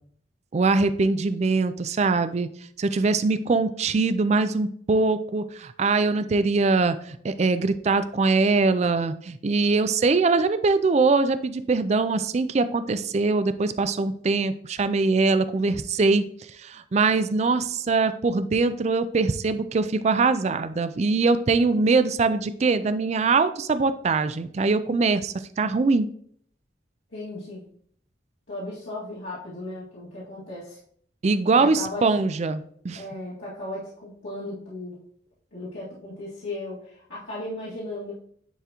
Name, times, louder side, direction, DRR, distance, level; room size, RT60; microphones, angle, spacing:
voice 1, 0.5-2.5 2.8-26.1 31.2-33.0, right 3 dB, 35° right, 12 dB, 0.3 m, -22 dB
voice 2, 27.1-27.6 28.5-30.8 31.5-32.2 32.9-35.0 35.5-38.1, left 1 dB, 75° left, -10 dB, 2.0 m, -36 dB
10.0 x 3.6 x 2.9 m, 0.62 s
head